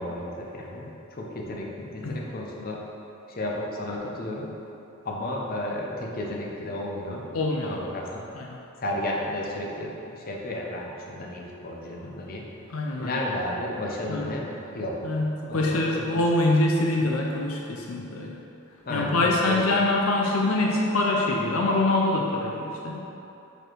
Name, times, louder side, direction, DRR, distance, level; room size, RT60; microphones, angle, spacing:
voice 1, 0.0-2.8 3.3-4.5 5.0-7.3 7.6-8.2 8.8-12.5 13.0-15.0 15.5-16.2 18.9-19.7, left 1 dB, 45° left, -2 dB, 0.8 m, -33 dB
voice 2, 7.3-7.8 8.3-8.6 12.7-13.2 14.1-14.3 15.0-15.3 15.5-18.4 18.9-23.0, left 2 dB, 80° left, -1 dB, 0.6 m, -24 dB
5.3 x 4.4 x 4.4 m, 2.9 s
head